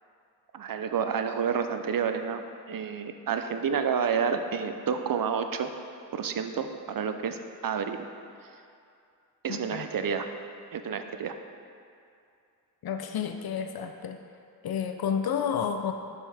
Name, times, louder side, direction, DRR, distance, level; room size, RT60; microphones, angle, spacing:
voice 1, 0.5-5.7 6.1-8.0 9.4-10.3 10.7-11.3, right 6 dB, 60° right, 7 dB, 0.5 m, -29 dB
voice 2, 9.5-9.9 12.8-14.2 14.6-15.9, left 7 dB, 70° left, 6 dB, 0.5 m, -30 dB
8.2 x 5.5 x 3.4 m, 2.5 s
cardioid pair, 55°, 38 cm